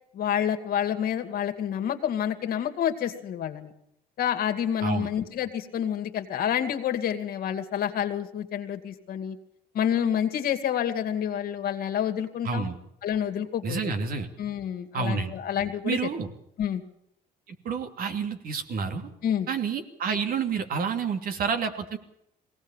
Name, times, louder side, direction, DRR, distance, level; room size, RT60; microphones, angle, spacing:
voice 1, 0.1-3.7 4.2-9.4 9.7-12.7 13.0-13.8 14.4-16.0 16.6-16.8 19.2-19.5, left 9 dB, 60° left, 7 dB, 2.3 m, -28 dB
voice 2, 12.4-12.8 13.6-14.3 14.9-15.3 15.8-16.3 17.5-19.1 19.5-22.0, right 5 dB, 60° right, 6 dB, 2.8 m, -29 dB
21.5 x 17.5 x 7.3 m, 0.76 s
cardioid pair, 110°, 17 cm